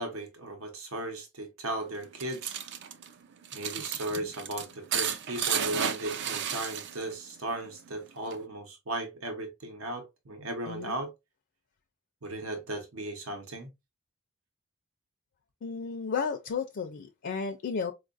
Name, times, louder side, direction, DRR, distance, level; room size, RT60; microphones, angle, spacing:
voice 1, 0.0-2.6 3.5-11.1 12.2-13.7, right 1 dB, 75° right, 0.9 m, -36 dB
sound 1, 1.9-7.2 7.5-8.4, right 8 dB, 55° right, 0.4 m, -33 dB
voice 2, 15.6-17.9, left 5 dB, 55° left, 0.4 m, -33 dB
4.5 x 2.4 x 2.4 m
head